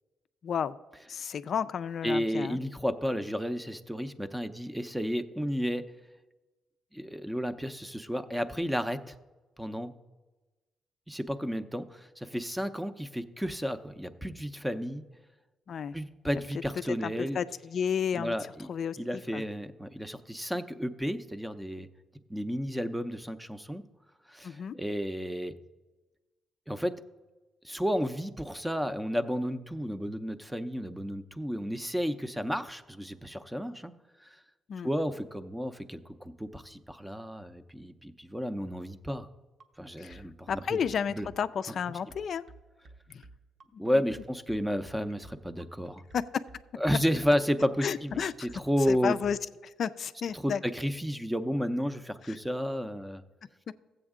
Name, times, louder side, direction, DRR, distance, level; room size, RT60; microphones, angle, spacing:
voice 1, 0.4-0.7 1.1-2.6 15.7-16.0 17.0-18.4 18.7-19.4 24.4-24.8 34.7-34.9 40.0-40.2 40.5-42.4 43.1-43.2 43.7-43.8 46.1-46.4 47.8-48.5 48.9-49.4 49.6-50.6 52.2-52.4 53.7-53.8, left 7 dB, 55° left, 12 dB, 0.3 m, -32 dB
voice 2, 2.0-5.8 6.9-9.2 9.6-9.9 11.1-15.0 15.9-17.4 18.2-18.7 19.0-21.9 22.3-23.8 24.3-25.5 26.7-26.9 27.6-33.9 34.2-34.4 34.8-39.3 39.8-40.8 41.1-41.3 43.8-46.0 46.8-49.1 50.3-53.2, equal, 5° right, 11 dB, 0.6 m, -32 dB
sound 1, 39.6-49.4, right 2 dB, 50° right, 0.9 m, -53 dB
14.0 x 7.9 x 3.7 m, 1.2 s
cardioid pair, 90°, 0 cm